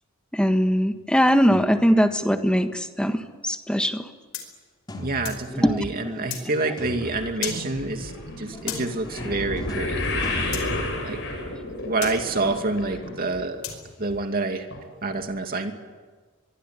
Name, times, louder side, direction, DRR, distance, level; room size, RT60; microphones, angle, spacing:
voice 1, 0.3-4.1 5.5-6.8, equal, 5° left, 7 dB, 1.5 m, -22 dB
sound 1, 1.5-2.2 4.9-5.7 6.8-7.5 8.5-11.5, left 1 dB, 20° left, 3.3 m, -39 dB
sound 2, 4.3-5.5 6.3-6.5 7.4-7.6 8.7-8.9 10.5-10.7 12.0-12.2 13.6-13.8, left 9 dB, 75° left, 5.1 m, -33 dB
voice 2, 5.0-8.1 8.4-10.0 11.0-11.2 11.8-13.6 14.0-14.7 15.0-15.7, right 2 dB, 45° right, 5 dB, 2.6 m, -27 dB
sound 3, 7.0-13.4 13.7-14.1 14.7-14.8 15.1-15.2, left 2 dB, 60° left, 7.4 m, -31 dB
24.0 x 23.5 x 9.8 m, 1.4 s
head